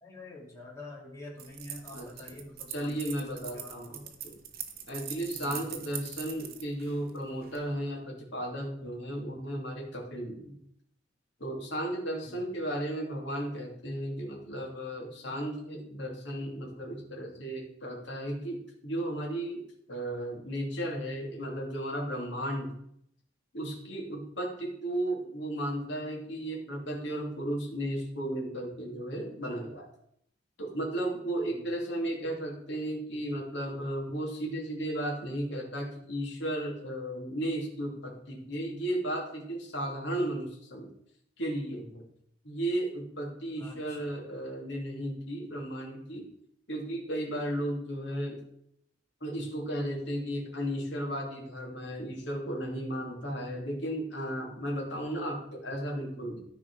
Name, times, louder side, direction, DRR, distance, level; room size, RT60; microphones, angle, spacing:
voice 1, 0.0-4.1 5.3-5.7 12.3-12.4 31.5-31.7 43.6-44.1, left 2 dB, 15° left, -5 dB, 2.7 m, -47 dB
sound 1, 1.4-7.6, right 9 dB, 55° right, 1.1 m, -42 dB
voice 2, 2.7-4.4 4.9-10.6 11.4-19.6 19.9-22.8 23.5-29.8 30.6-40.9 41.4-42.1 42.4-46.3 46.7-48.4 49.2-56.4, right 1 dB, 65° left, -1 dB, 2.7 m, -34 dB
13.5 x 4.9 x 4.7 m, 0.73 s
head